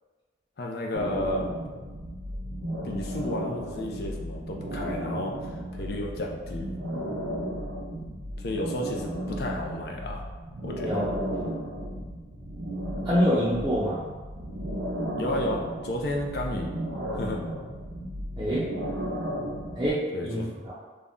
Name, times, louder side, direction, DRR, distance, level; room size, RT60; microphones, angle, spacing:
voice 1, 0.6-1.5 2.8-6.7 8.4-10.3 10.6-11.1 15.2-16.7 17.1-17.4 20.1-20.5, left 1 dB, 60° left, 0 dB, 0.5 m, -32 dB
sound 1, 0.9-19.9, equal, 70° right, 0.5 m, -34 dB
voice 2, 13.0-14.0 18.4-18.7 19.8-20.7, equal, 20° right, -10 dB, 0.5 m, -26 dB
2.6 x 2.1 x 3.5 m, 1.3 s
head